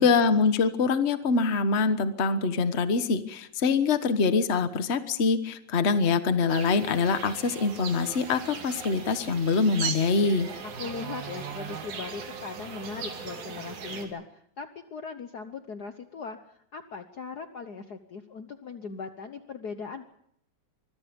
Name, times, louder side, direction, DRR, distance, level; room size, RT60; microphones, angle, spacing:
voice 1, 0.0-10.5, left 4 dB, 60° left, 10 dB, 0.7 m, -24 dB
sound 1, 6.5-14.1, right 6 dB, 85° right, 4.0 m, -38 dB
voice 2, 10.6-16.4 16.7-20.1, left 5 dB, 85° left, 8 dB, 0.8 m, -39 dB
24.5 x 23.0 x 5.3 m, 0.70 s
omnidirectional pair, 3.4 m